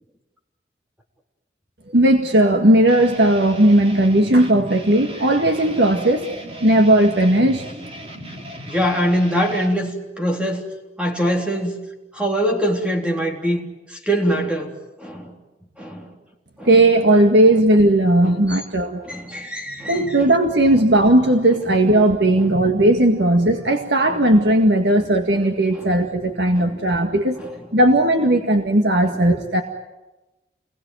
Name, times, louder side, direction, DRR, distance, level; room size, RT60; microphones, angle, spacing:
voice 1, 1.9-6.3 6.6-7.6 16.7-19.0 19.9-27.4 27.7-29.6, right 1 dB, 75° right, 4 dB, 1.9 m, -16 dB
sound 1, 2.9-9.8, right 1 dB, 35° right, 3.4 m, -37 dB
voice 2, 8.7-9.9 10.2-10.7 11.0-11.8 12.1-13.6 13.9-14.8 15.0-15.3 15.8-16.1 16.6-16.7 18.2-18.6 19.1-20.3 22.4-22.5 24.1-24.2 24.9-25.1 25.8-25.9 26.6-26.8 27.4-27.5, equal, 5° right, 1 dB, 3.6 m, -23 dB
28.5 x 21.5 x 9.3 m, 1.1 s
head